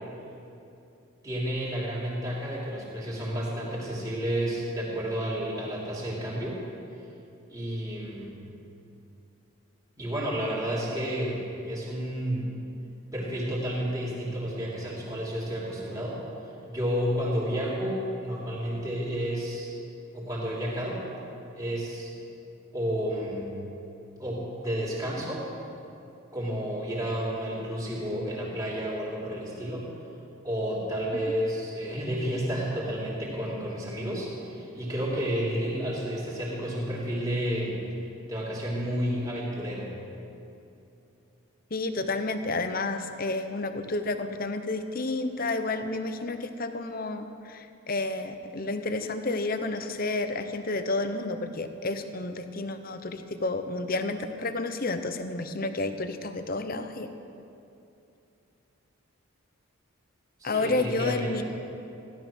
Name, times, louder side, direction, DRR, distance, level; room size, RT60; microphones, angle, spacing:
voice 1, 1.2-6.6 7.5-8.4 10.0-12.5 13.1-16.2 16.4-19.7 20.1-21.0 21.5-22.1 22.7-23.5 24.2-25.4 26.3-29.9 30.4-37.8 38.2-39.9 60.4-61.4, equal, 15° right, -6 dB, 3.3 m, -31 dB
voice 2, 41.7-57.1 60.4-61.4, left 2 dB, 40° left, 8 dB, 0.8 m, -30 dB
16.0 x 12.5 x 6.2 m, 2.7 s
head